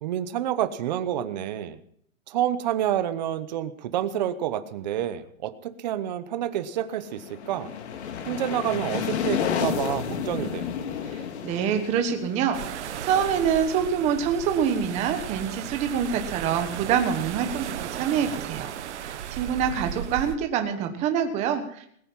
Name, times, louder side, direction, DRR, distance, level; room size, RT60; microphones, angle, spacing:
voice 1, 0.0-1.8 2.3-7.7 8.2-10.7, right 11 dB, 35° right, 12 dB, 0.9 m, -28 dB
sound 1, 7.0-13.7, left 7 dB, 55° left, 2.3 m, -31 dB
voice 2, 11.1-18.7 19.0-21.9, right 7 dB, 15° right, 6 dB, 1.3 m, -26 dB
sound 2, 12.5-20.4, right 10 dB, 55° right, 1.4 m, -35 dB
20.5 x 9.2 x 5.6 m, 0.65 s
hypercardioid pair, 165°, 41 cm